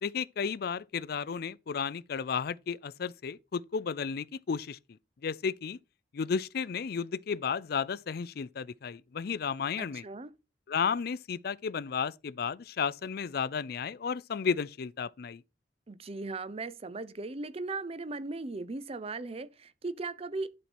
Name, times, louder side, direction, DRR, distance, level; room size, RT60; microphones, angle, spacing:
voice 1, 0.0-4.8 5.2-5.8 6.1-10.0 10.7-15.4, left 6 dB, 60° left, 0.4 m, -33 dB
voice 2, 9.8-10.3 15.9-20.5, right 3 dB, 35° right, 0.6 m, -38 dB
11.0 x 4.4 x 4.3 m
head